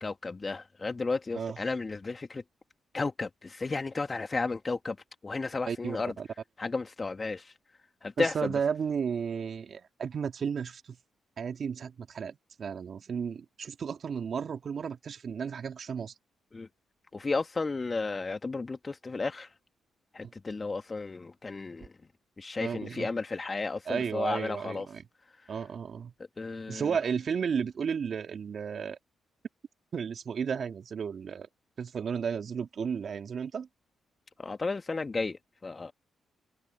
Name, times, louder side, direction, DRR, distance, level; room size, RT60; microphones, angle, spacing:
voice 1, 0.0-2.4 2.9-5.0 5.2-6.1 6.6-7.5 8.0-8.5 16.5-16.7 17.1-19.5 20.1-21.9 22.4-24.9 25.4-25.6 26.4-27.0 34.4-35.9, left 3 dB, 35° left, 1.7 m, -33 dB
voice 2, 5.7-6.3 8.2-11.0 11.4-16.1 22.6-23.1 23.9-25.0 25.5-26.1 26.7-29.0 29.9-31.5 31.8-33.7, right 6 dB, 60° right, 2.1 m, -33 dB
hypercardioid pair, 45°, 0 cm